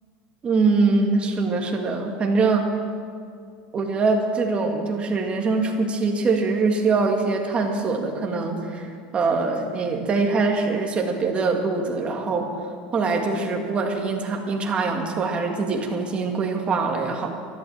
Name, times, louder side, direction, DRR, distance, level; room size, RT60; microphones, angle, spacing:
voice 1, 0.4-2.7 3.7-12.5 12.9-17.3, right 4 dB, 25° right, 2 dB, 2.0 m, -23 dB
12.5 x 11.5 x 7.4 m, 2.2 s
supercardioid pair, 130°, 4 cm